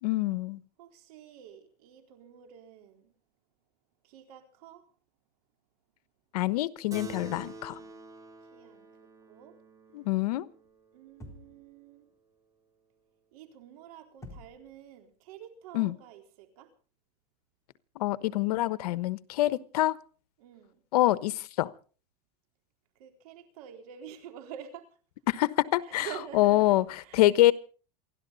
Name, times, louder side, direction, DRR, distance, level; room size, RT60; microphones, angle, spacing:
voice 1, 0.0-0.6 6.3-7.8 9.9-10.5 15.7-15.9 17.9-20.0 20.9-21.7 25.3-26.1 26.3-26.8 27.1-27.5, left 16 dB, 85° left, 1.2 m, -25 dB
voice 2, 0.8-3.1 4.0-4.8 7.7-8.0 8.5-9.0 9.3-9.6 10.9-12.1 13.3-16.7 20.4-20.8 23.0-24.9 25.8-27.2, right 10 dB, 75° right, 4.2 m, -48 dB
Keyboard (musical), 6.9-11.8, right 3 dB, 15° right, 1.8 m, -48 dB
sound 1, 11.2-11.7 14.2-14.8, left 1 dB, 15° left, 3.9 m, -47 dB
28.5 x 12.0 x 4.1 m
supercardioid pair, 135°, 19 cm